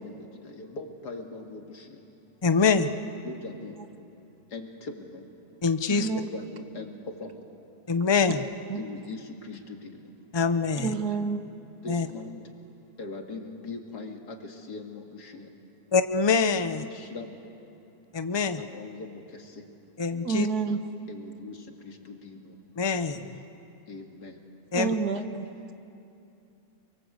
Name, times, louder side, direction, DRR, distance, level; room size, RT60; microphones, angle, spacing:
voice 1, 0.0-2.0 3.2-3.8 4.5-5.3 6.0-7.5 8.7-10.1 11.8-12.4 13.0-15.8 16.7-17.4 18.6-19.7 21.1-22.6 23.8-24.4, left 3 dB, 85° left, 3 dB, 2.7 m, -41 dB
voice 2, 2.4-2.9 5.6-6.1 7.9-8.4 10.3-10.9 11.9-12.1 15.9-16.8 18.1-18.6 20.0-20.5 22.8-23.2 24.7-24.9, left 5 dB, 25° left, 10 dB, 0.6 m, -24 dB
voice 3, 5.9-6.3 8.7-8.8 10.8-11.4 20.2-20.8 24.7-25.5, right 5 dB, 75° right, 9 dB, 1.7 m, -29 dB
28.5 x 23.0 x 8.1 m, 2.7 s
omnidirectional pair, 1.7 m